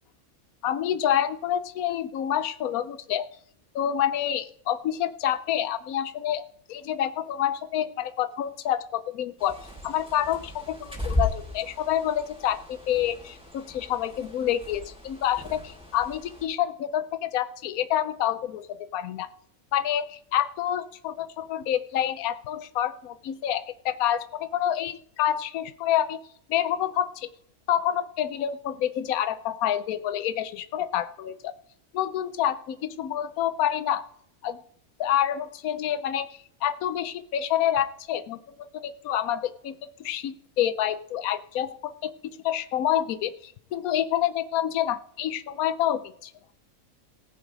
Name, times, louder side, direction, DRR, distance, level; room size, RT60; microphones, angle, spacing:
voice 1, 0.6-3.3 3.7-6.4 6.7-9.6 9.8-19.3 19.7-26.2 26.5-27.3 27.7-31.5 31.9-34.0 34.4-34.6 35.0-38.4 38.7-39.7 40.0-42.1 42.4-46.3, left 11 dB, 85° left, 12 dB, 1.1 m, -28 dB
Bird, 9.4-16.4, left 1 dB, 5° right, 3.9 m, -35 dB
19.0 x 7.9 x 3.9 m, 0.66 s
omnidirectional pair, 1.5 m